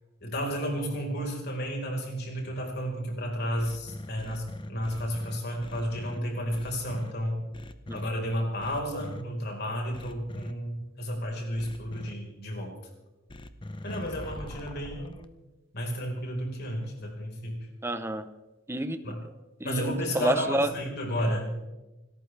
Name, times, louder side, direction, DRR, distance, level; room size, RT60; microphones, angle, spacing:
voice 1, 0.2-7.4 7.9-12.8 13.8-15.1 15.7-17.7 19.0-19.2 19.6-21.6, equal, 55° left, 1 dB, 4.6 m, -32 dB
sound 1, 3.6-6.2 6.5-7.1 7.5-8.1 8.6-9.2 9.9-10.5 11.6-12.1 13.3-15.2, left 1 dB, 25° left, 0.8 m, -41 dB
voice 2, 17.8-18.3 18.7-19.1 19.6-20.7, right 1 dB, 10° right, 10 dB, 0.8 m, -29 dB
28.5 x 13.5 x 3.4 m, 1.1 s
head